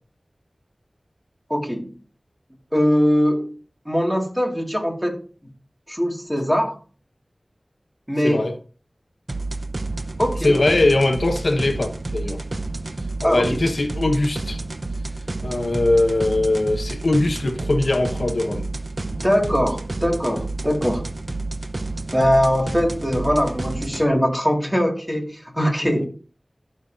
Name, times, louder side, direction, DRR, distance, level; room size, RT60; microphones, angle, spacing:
voice 1, 1.5-1.9 2.7-3.6 3.9-5.2 5.9-6.8 8.1-8.4 10.2-10.6 13.2-13.6 19.2-21.0 22.1-26.1, equal, 10° right, 2.0 m, -21 dB
voice 2, 8.2-8.6 10.4-12.4 13.2-14.6 15.4-18.7, left 2 dB, 75° left, 1.1 m, -21 dB
sound 1, 9.3-24.0, right 2 dB, 55° right, 0.7 m, -30 dB
14.5 x 6.6 x 2.6 m
wide cardioid pair, 50°, 0 cm